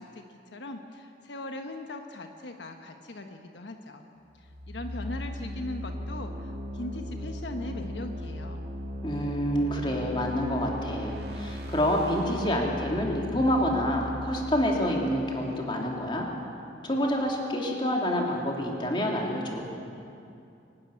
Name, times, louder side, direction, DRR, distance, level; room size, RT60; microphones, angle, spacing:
voice 1, 0.0-4.1 4.4-8.6, left 2 dB, 80° left, 5 dB, 1.2 m, -40 dB
sound 1, 4.4-16.1, equal, 60° right, 1.8 m, -38 dB
voice 2, 9.0-16.3 16.8-19.6, equal, 25° left, 0 dB, 2.8 m, -27 dB
23.5 x 11.5 x 9.8 m, 2.6 s
head